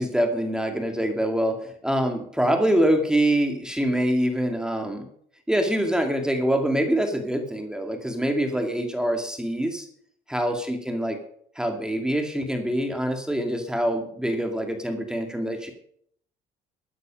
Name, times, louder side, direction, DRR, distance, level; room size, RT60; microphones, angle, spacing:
voice 1, 0.0-5.1 5.5-9.9 10.3-11.2 11.6-15.7, right 1 dB, 5° right, 5 dB, 2.1 m, -25 dB
13.5 x 9.8 x 5.2 m, 0.63 s
cardioid pair, 110°, 17 cm